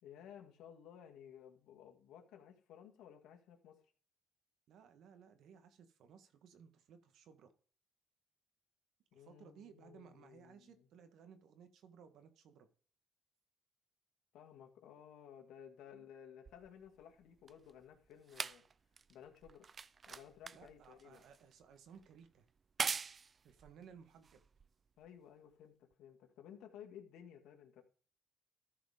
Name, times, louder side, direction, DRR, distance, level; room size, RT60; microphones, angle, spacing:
voice 1, 0.0-3.8 9.1-10.9 14.3-18.6 19.1-19.7 20.1-21.2 25.0-27.8, left 9 dB, 85° left, 2.0 m, -56 dB
voice 2, 4.7-7.5 9.1-12.7 15.9-16.1 20.5-22.5 23.4-24.4, right 7 dB, 80° right, 1.6 m, -60 dB
sound 1, 16.5-25.1 25.9-26.0, right 5 dB, 40° right, 0.4 m, -45 dB
13.5 x 5.0 x 5.1 m
cardioid pair, 90°, 0 cm